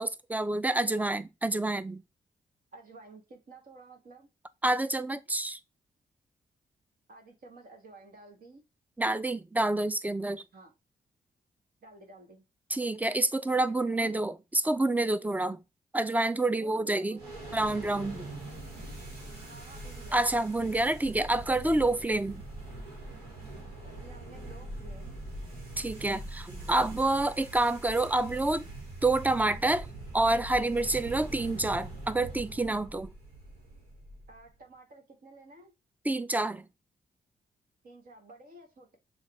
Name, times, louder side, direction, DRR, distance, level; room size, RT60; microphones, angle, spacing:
voice 1, 0.0-2.0 4.6-5.6 9.0-10.4 12.7-15.6 15.9-17.2 17.5-18.3 20.1-22.4 25.8-28.6 29.0-29.9 30.1-33.1 36.0-36.7, right 2 dB, 10° right, 0.5 m, -28 dB
voice 2, 2.7-4.3 7.1-8.6 10.5-10.7 11.8-12.4 13.5-14.1 16.6-17.6 19.5-20.2 23.8-25.2 34.3-35.7 37.8-39.0, right 2 dB, 55° right, 1.7 m, -52 dB
sound 1, 17.2-34.5, right 2 dB, 90° right, 1.3 m, -43 dB
6.4 x 2.5 x 3.2 m
hypercardioid pair, 40°, 18 cm